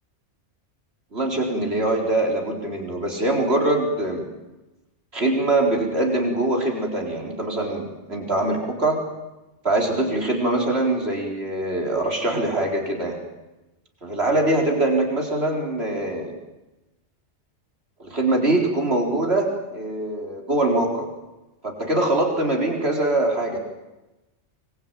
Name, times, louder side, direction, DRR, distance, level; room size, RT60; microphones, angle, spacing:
voice 1, 1.1-4.3 5.1-9.0 9.6-13.2 14.0-16.3 18.0-21.1 21.6-23.6, right 2 dB, 55° right, 1 dB, 4.6 m, -23 dB
25.0 x 21.5 x 9.1 m, 1.0 s
omnidirectional pair, 1.2 m